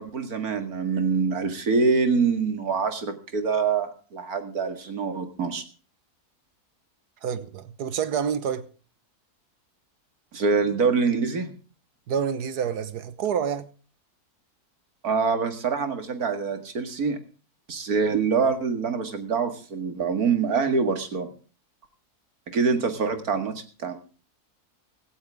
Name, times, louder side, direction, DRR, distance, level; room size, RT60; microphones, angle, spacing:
voice 1, 0.0-5.6 10.3-11.5 15.0-17.2 17.7-21.3 22.5-24.0, right 5 dB, 70° right, 2.4 m, -25 dB
voice 2, 7.2-8.7 12.1-13.7, right 7 dB, 85° right, 1.6 m, -28 dB
16.5 x 15.0 x 3.5 m
omnidirectional pair, 1.7 m